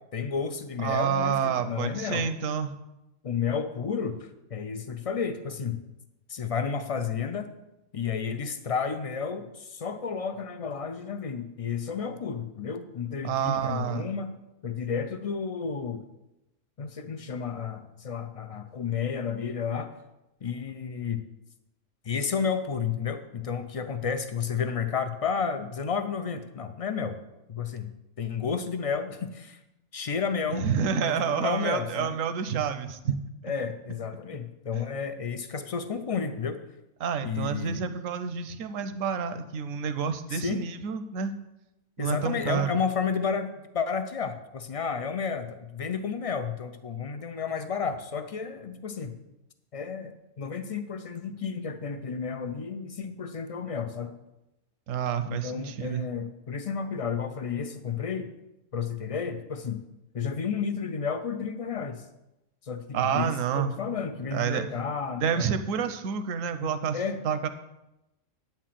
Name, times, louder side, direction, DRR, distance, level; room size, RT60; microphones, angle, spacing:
voice 1, 0.1-2.3 3.2-4.2 4.5-5.8 6.3-7.5 7.9-14.3 14.6-16.0 16.8-19.9 20.4-21.2 22.1-27.2 27.5-27.9 28.2-29.6 29.9-30.6 31.0-32.1 33.4-36.6 37.2-37.8 40.3-40.6 42.0-43.5 43.7-49.1 49.7-54.1 55.2-58.3 58.7-59.8 60.1-62.0 62.7-65.5 66.9-67.2, left 6 dB, 65° left, 9 dB, 0.3 m, -31 dB
voice 2, 0.8-2.7 13.2-14.1 30.5-33.1 34.7-34.8 37.0-41.3 42.0-42.8 54.9-56.0 62.9-63.7 64.3-64.7 65.2-67.5, right 7 dB, 80° right, 10 dB, 1.1 m, -29 dB
9.2 x 4.5 x 7.4 m, 0.92 s
omnidirectional pair, 1.3 m